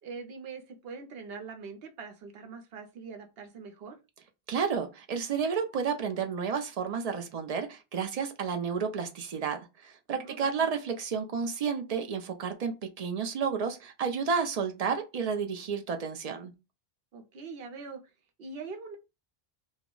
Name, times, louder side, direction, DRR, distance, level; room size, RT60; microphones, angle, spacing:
voice 1, 0.0-4.0 10.1-10.7 17.1-18.0 18.4-19.0, right 4 dB, 75° right, 0.9 m, -43 dB
voice 2, 4.5-16.5, right 6 dB, 55° right, 0.4 m, -31 dB
2.2 x 2.0 x 3.6 m
omnidirectional pair, 1.0 m